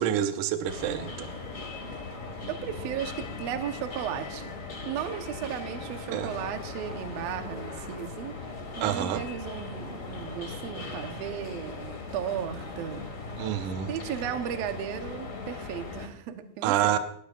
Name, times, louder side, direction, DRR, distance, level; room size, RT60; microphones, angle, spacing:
voice 1, 0.0-1.3 6.1-6.3 8.8-9.2 13.4-13.9 16.6-17.0, right 11 dB, 85° right, 8 dB, 1.7 m, -27 dB
sound 1, 0.6-16.1, left 3 dB, 40° left, 1.2 m, -39 dB
voice 2, 2.5-4.5 4.8-8.3 8.8-13.1 13.9-17.0, right 9 dB, 65° right, 6 dB, 1.7 m, -35 dB
19.0 x 15.5 x 2.5 m, 0.66 s
omnidirectional pair, 4.3 m